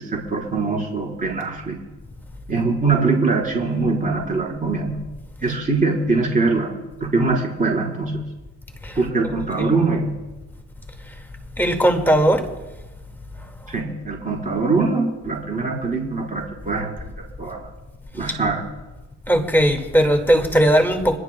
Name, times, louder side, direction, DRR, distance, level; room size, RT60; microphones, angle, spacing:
voice 1, 0.0-1.8 2.5-5.0 5.4-8.2 8.9-10.1 13.7-16.9 17.4-17.7 18.1-18.6, right 3 dB, 25° right, -2 dB, 4.8 m, -22 dB
voice 2, 11.6-12.5 18.2-18.3 19.3-21.2, equal, 5° left, 4 dB, 2.1 m, -18 dB
28.0 x 11.5 x 2.3 m, 1.1 s
cardioid pair, 90°, 30 cm